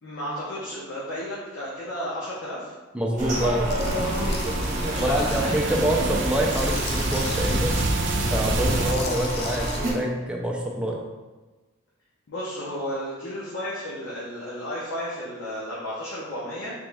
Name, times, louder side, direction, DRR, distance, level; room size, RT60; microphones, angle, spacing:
voice 1, 0.0-2.7 4.8-5.9 12.3-16.7, equal, 70° left, -8 dB, 0.8 m, -33 dB
voice 2, 2.9-3.7 5.0-7.8 8.3-11.0, right 1 dB, 5° right, -1 dB, 0.4 m, -26 dB
sound 1, 3.2-9.9, right 1 dB, 40° right, 1.0 m, -29 dB
Tools, 3.7-5.4 5.9-7.8 8.6-9.8, left 4 dB, 50° left, 0.5 m, -38 dB
sound 2, 3.8-8.9, right 2 dB, 60° right, 0.5 m, -28 dB
3.5 x 3.0 x 3.4 m, 1.2 s
head